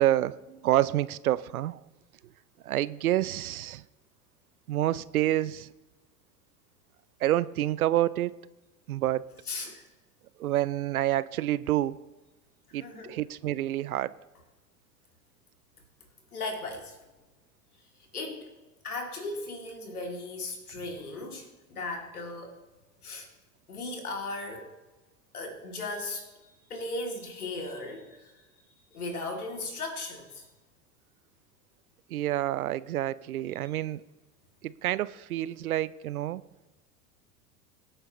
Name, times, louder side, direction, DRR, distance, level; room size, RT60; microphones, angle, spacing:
voice 1, 0.0-1.8 2.6-3.8 4.7-5.7 7.2-8.3 8.9-9.2 10.4-12.0 12.7-14.1 32.1-34.0 34.6-36.4, right 13 dB, 75° right, 0.6 m, -28 dB
voice 2, 9.5-9.8 12.7-13.2 16.3-17.0 18.1-18.5 18.8-22.6 23.0-23.3 23.7-24.7 25.3-28.3 28.9-30.5, left 2 dB, 80° left, 2.8 m, -37 dB
23.0 x 8.9 x 3.1 m
figure-of-eight pair, 85°, 44 cm